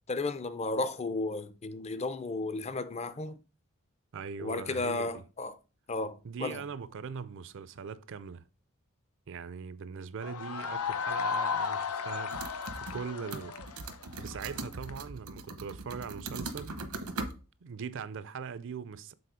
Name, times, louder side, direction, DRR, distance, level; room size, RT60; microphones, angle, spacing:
voice 1, 0.1-3.4 4.4-5.5 5.9-6.6, left 3 dB, 30° left, 0.5 m, -34 dB
voice 2, 4.1-5.2 6.2-8.4 9.3-12.4 12.8-13.6 14.2-16.8 17.6-19.1, right 6 dB, 60° right, 0.5 m, -41 dB
sound 1, 10.2-14.9, left 6 dB, 90° left, 0.7 m, -34 dB
sound 2, 12.3-13.1 13.3-17.3, right 3 dB, 90° right, 0.9 m, -40 dB
6.9 x 3.9 x 5.0 m
head